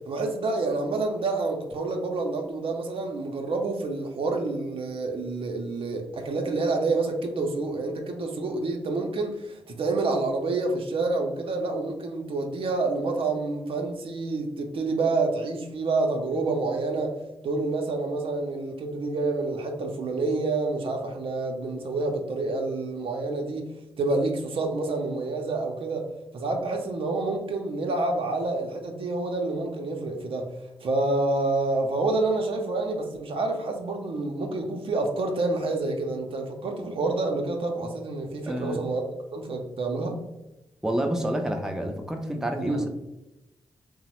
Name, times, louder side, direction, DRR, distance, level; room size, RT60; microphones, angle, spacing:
voice 1, 0.1-17.1 17.4-23.6 24.0-26.0 26.3-30.4 30.8-39.0 39.3-40.2 42.7-42.8, right 3 dB, 65° right, 3 dB, 0.5 m, -28 dB
voice 2, 38.5-38.8 40.8-42.9, right 1 dB, 5° right, 4 dB, 0.5 m, -28 dB
2.9 x 2.0 x 2.9 m, 0.97 s
supercardioid pair, 45°, 10 cm